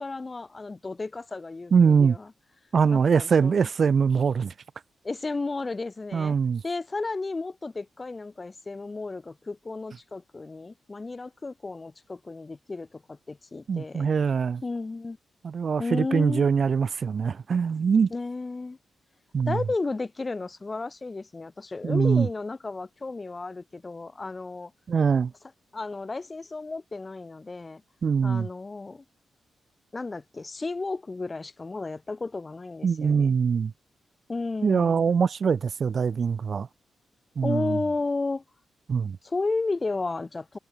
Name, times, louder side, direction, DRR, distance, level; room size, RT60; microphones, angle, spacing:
voice 1, 0.0-2.3 2.9-3.6 5.0-6.4 6.6-14.1 14.6-15.2 15.8-16.5 18.1-18.8 19.5-24.7 25.7-27.8 28.2-29.0 29.9-33.3 34.3-35.1 37.4-38.4 39.2-40.6, left 3 dB, 30° left, 0.8 m, -33 dB
voice 2, 1.7-2.2 2.7-4.5 6.1-6.6 13.7-14.6 15.4-18.1 19.3-19.6 21.8-22.3 24.9-25.3 28.0-28.5 32.8-33.7 34.6-36.7 37.4-37.8 38.9-39.2, right 6 dB, 55° right, 0.3 m, -23 dB
cardioid pair, 85°, 0 cm